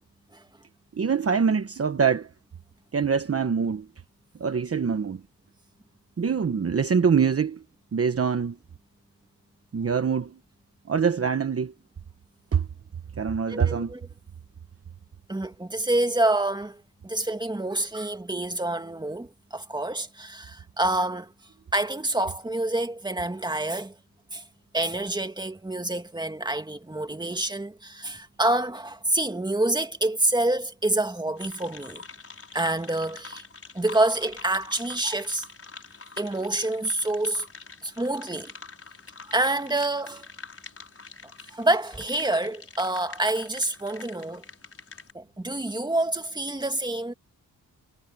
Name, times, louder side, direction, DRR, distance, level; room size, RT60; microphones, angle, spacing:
voice 1, 1.0-2.3 2.9-3.9 4.4-5.2 6.2-7.6 7.9-8.6 9.7-10.4 10.9-11.7 12.5-12.7 13.2-13.9, right 6 dB, 40° right, 1.1 m, -24 dB
voice 2, 13.5-14.0 15.3-21.3 21.7-23.9 24.3-24.4 24.7-32.0 32.5-33.4 33.7-35.5 36.2-37.5 37.8-38.5 39.3-40.3 41.5-44.4 45.1-47.1, right 2 dB, 10° right, 2.2 m, -27 dB
sound 1, 31.4-45.1, left 4 dB, 40° left, 6.1 m, -45 dB
wide cardioid pair, 135°, 37 cm